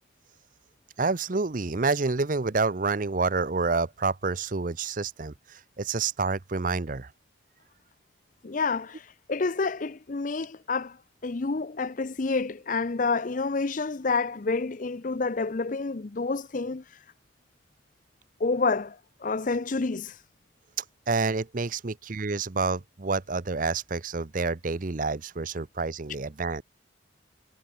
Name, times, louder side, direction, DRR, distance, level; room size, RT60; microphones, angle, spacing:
voice 1, 1.0-7.1 21.1-26.6, right 4 dB, 45° right, 0.7 m, -28 dB
voice 2, 8.4-11.0 11.2-16.8 18.4-20.2, left 4 dB, 45° left, 0.6 m, -28 dB
head